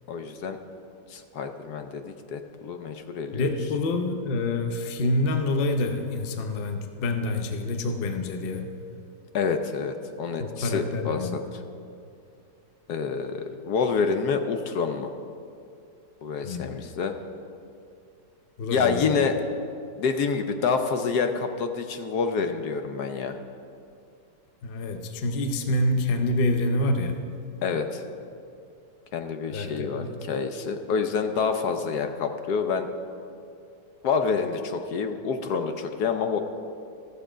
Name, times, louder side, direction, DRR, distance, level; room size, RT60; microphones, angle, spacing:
voice 1, 0.1-0.6 1.1-3.5 9.3-11.4 12.9-15.1 16.2-17.1 18.7-19.4 20.0-23.4 27.6-28.0 29.1-32.9 34.0-36.4, left 5 dB, 70° left, 7 dB, 1.1 m, -27 dB
voice 2, 3.3-8.7 10.4-11.4 16.4-16.9 18.6-19.2 24.6-27.2 29.5-30.2, left 2 dB, 55° left, 6 dB, 0.6 m, -27 dB
14.0 x 6.9 x 5.0 m, 2.5 s
omnidirectional pair, 1.9 m